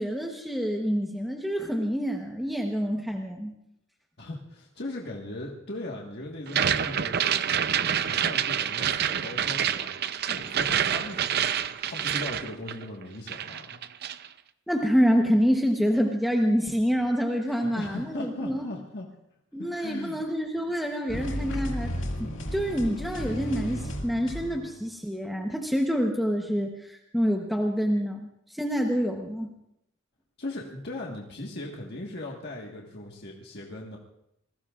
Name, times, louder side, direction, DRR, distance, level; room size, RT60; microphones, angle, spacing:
voice 1, 0.0-3.5 14.7-18.6 19.5-21.9 22.2-29.5, equal, ahead, 1 dB, 1.0 m, -27 dB
voice 2, 4.2-13.9 17.5-19.1 19.5-20.2 30.4-34.0, left 2 dB, 55° left, -2 dB, 1.6 m, -39 dB
sound 1, 6.5-13.0 13.3-14.3, right 9 dB, 55° right, 0.6 m, -27 dB
sound 2, 21.1-24.9, equal, 70° left, 2.1 m, -33 dB
27.5 x 20.0 x 2.5 m, 0.80 s
head